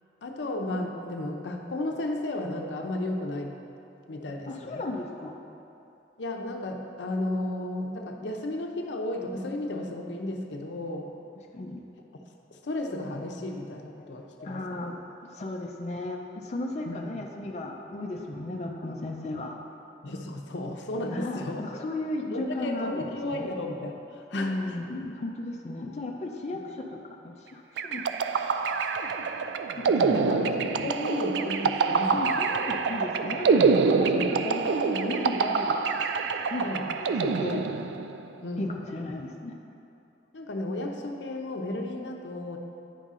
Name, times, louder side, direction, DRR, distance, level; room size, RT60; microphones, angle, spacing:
voice 1, 0.2-3.6 4.1-4.8 6.2-11.1 12.5-15.0 16.8-17.1 20.0-21.6 22.3-24.6 30.1-32.4 34.1-34.4 36.6-36.9 38.4-38.8 40.3-42.6, left 1 dB, 85° left, 3 dB, 0.7 m, -34 dB
voice 2, 4.5-5.4 11.5-11.8 14.4-15.0 15.3-19.6 21.1-23.5 24.3-28.0 29.7-30.9 32.1-35.8 36.5-37.7 38.6-39.6, left 2 dB, 40° left, 0 dB, 0.5 m, -35 dB
sound 1, 27.8-38.2, right 5 dB, 75° right, 0.3 m, -26 dB
9.0 x 5.6 x 3.7 m, 2.8 s
head